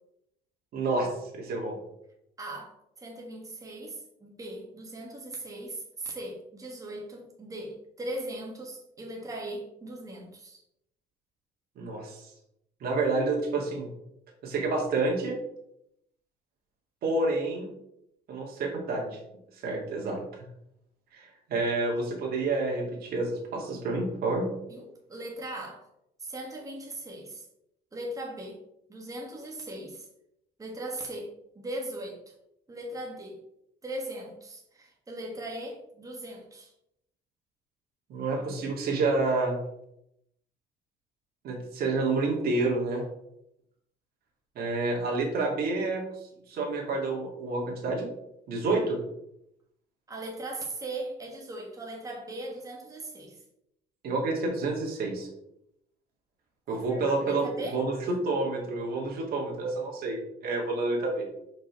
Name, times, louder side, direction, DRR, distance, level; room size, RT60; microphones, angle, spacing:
voice 1, 0.7-1.8 11.8-12.3 12.8-13.9 14.4-15.4 17.0-17.7 18.3-19.2 19.6-20.5 21.1-24.5 38.1-39.6 41.4-43.0 44.6-46.0 46.5-48.1 48.5-49.0 54.0-55.3 56.7-57.5 57.7-61.3, right 3 dB, 65° right, -2 dB, 2.1 m, -29 dB
voice 2, 2.4-10.6 24.7-25.8 26.2-27.4 27.9-28.6 28.9-30.1 30.6-32.3 32.7-33.4 33.8-36.7 50.1-53.4 56.7-57.8, right 1 dB, 20° right, -1 dB, 1.6 m, -39 dB
5.4 x 5.0 x 4.7 m, 0.79 s
cardioid pair, 110°, 17 cm